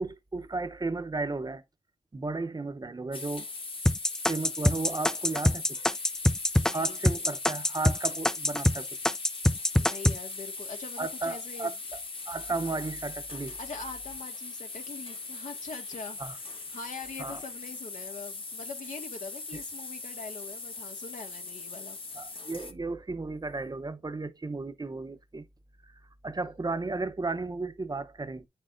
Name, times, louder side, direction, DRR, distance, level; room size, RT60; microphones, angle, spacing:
voice 1, 0.0-1.6 2.1-3.5 4.3-5.9 6.7-8.9 11.0-12.0 12.3-13.6 16.2-16.4 17.2-17.4 19.5-19.6 22.2-25.5 25.8-28.5, right 3 dB, 30° right, 0.8 m, -34 dB
sound 1, 3.1-22.7, left 3 dB, 45° left, 1.3 m, -40 dB
sound 2, 3.9-8.8 9.1-10.2, left 1 dB, 5° left, 0.4 m, -24 dB
voice 2, 6.6-7.0 9.8-11.7 13.4-22.0, left 4 dB, 80° left, 1.9 m, -43 dB
8.4 x 6.4 x 2.6 m
cardioid pair, 70°, 13 cm